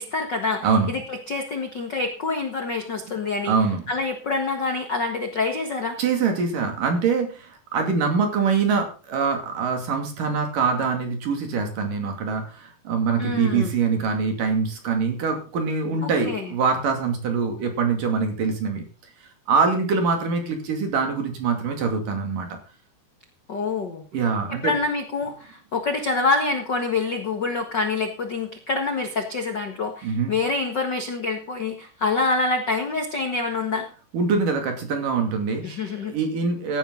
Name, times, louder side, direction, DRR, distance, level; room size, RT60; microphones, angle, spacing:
voice 1, 0.0-3.5 3.9-6.0 13.2-13.7 16.0-16.5 23.5-24.0 24.5-33.9 35.6-36.1, left 3 dB, 80° left, 4 dB, 0.9 m, -26 dB
voice 2, 0.6-0.9 3.5-3.8 6.0-18.8 19.5-22.5 24.1-24.7 30.0-30.3 34.1-35.6 36.1-36.8, right 5 dB, 55° right, 5 dB, 3.9 m, -24 dB
16.0 x 11.5 x 3.9 m, 0.37 s
omnidirectional pair, 4.9 m